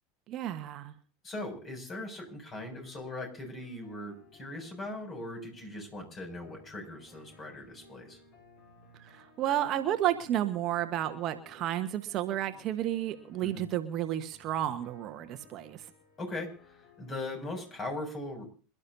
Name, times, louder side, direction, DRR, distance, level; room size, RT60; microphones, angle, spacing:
voice 1, 0.3-0.9 9.0-15.8, right 12 dB, 40° right, 7 dB, 1.3 m, -32 dB
voice 2, 1.2-8.2 13.4-13.6 16.2-18.5, left 2 dB, 25° left, 4 dB, 6.8 m, -40 dB
sound 1, 2.6-17.9, left 3 dB, 40° left, 4.8 m, -59 dB
27.0 x 12.5 x 2.8 m, 0.39 s
figure-of-eight pair, 80°, 0 cm